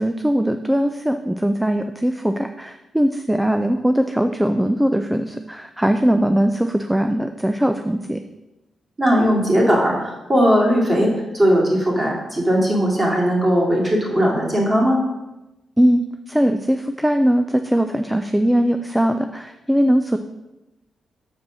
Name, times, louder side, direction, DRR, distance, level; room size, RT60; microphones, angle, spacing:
voice 1, 0.0-8.2 15.8-20.2, equal, 5° right, 7 dB, 0.4 m, -20 dB
voice 2, 9.0-15.0, equal, 25° right, -3 dB, 2.6 m, -18 dB
7.0 x 5.1 x 6.2 m, 1.0 s
cardioid pair, 105°, 0 cm